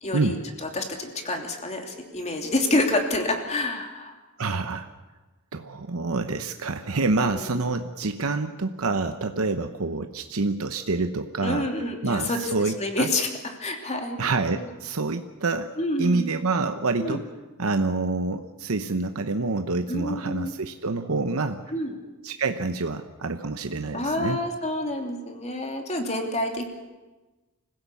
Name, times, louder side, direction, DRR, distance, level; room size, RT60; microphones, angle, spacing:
voice 1, 0.0-4.1 7.3-7.7 11.4-12.4 12.8-13.3 13.6-14.2 14.5-14.6 15.8-16.2 17.0-17.2 19.9-20.5 21.7-21.9 23.9-26.6, left 2 dB, 30° left, 3 dB, 3.0 m, -28 dB
voice 2, 4.4-4.9 5.5-11.7 12.0-13.1 14.2-17.3 17.6-21.6 22.2-24.4, right 3 dB, 80° right, 7 dB, 0.9 m, -27 dB
25.5 x 16.5 x 8.4 m, 1.2 s
head